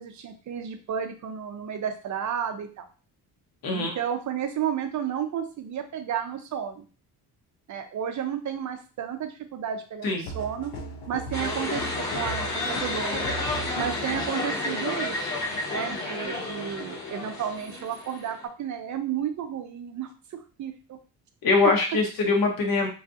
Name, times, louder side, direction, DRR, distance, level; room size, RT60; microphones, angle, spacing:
voice 1, 0.0-2.9 3.7-6.8 7.7-10.7 11.1-13.3 13.8-15.3 15.7-20.1 20.6-21.0, right 8 dB, 50° right, 7 dB, 0.5 m, -32 dB
voice 2, 3.6-4.0 10.0-10.3 21.4-22.9, left 3 dB, 65° left, 1 dB, 1.1 m, -23 dB
sound 1, 10.3-14.5, right 1 dB, 90° left, 0.8 m, -38 dB
sound 2, 11.3-18.4, left 2 dB, 50° left, 1.4 m, -31 dB
3.1 x 2.5 x 2.6 m, 0.36 s
cardioid pair, 120°, 38 cm